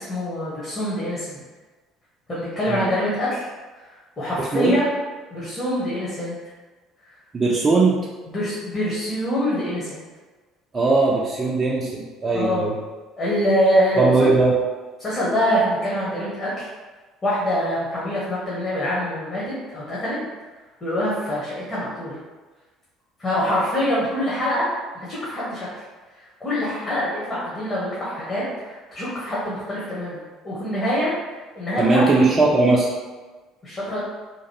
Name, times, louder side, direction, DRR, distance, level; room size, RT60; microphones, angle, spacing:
voice 1, 0.0-1.4 2.3-3.4 4.2-4.9 5.3-6.4 8.3-10.0 12.3-12.6 13.2-14.3 15.0-16.7 17.2-20.2 20.8-22.2 23.2-24.7 24.9-25.7 26.4-31.1 31.5-32.3 33.6-34.0, equal, 30° left, -8 dB, 1.1 m, -24 dB
voice 2, 4.4-4.8 7.3-8.0 10.7-12.8 14.0-14.6 31.8-32.9, right 3 dB, 30° right, -4 dB, 0.4 m, -19 dB
2.9 x 2.4 x 3.0 m, 1.3 s
figure-of-eight pair, 55°, 0 cm